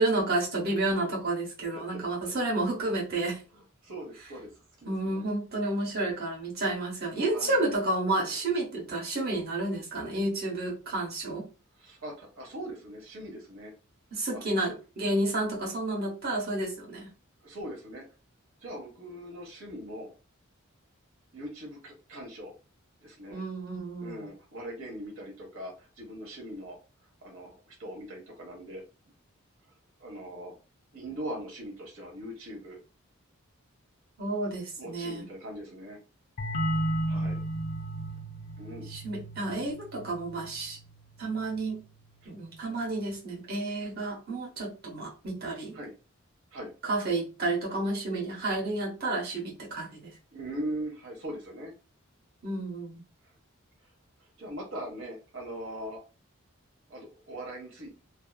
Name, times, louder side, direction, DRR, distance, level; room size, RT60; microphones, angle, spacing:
voice 1, 0.0-3.4 4.8-11.5 14.1-17.1 23.3-24.2 34.2-35.3 38.8-40.8 41.2-41.8 42.3-45.7 46.8-50.1 52.4-53.0, right 2 dB, 45° right, -2 dB, 1.0 m, -31 dB
voice 2, 3.8-4.5 4.8-5.2 7.3-7.6 11.8-13.7 14.3-14.4 17.4-18.0 18.6-20.1 21.3-22.5 23.0-23.4 24.0-26.8 27.2-28.8 30.0-30.5 30.9-32.8 34.8-36.0 37.1-37.4 38.6-38.9 45.7-45.9 46.5-46.7 50.3-51.7 54.4-56.0 56.9-58.0, right 1 dB, 65° right, 0 dB, 0.9 m, -40 dB
sound 1, 36.4-41.8, right 1 dB, 40° left, 0.4 m, -34 dB
2.6 x 2.4 x 2.3 m, 0.33 s
head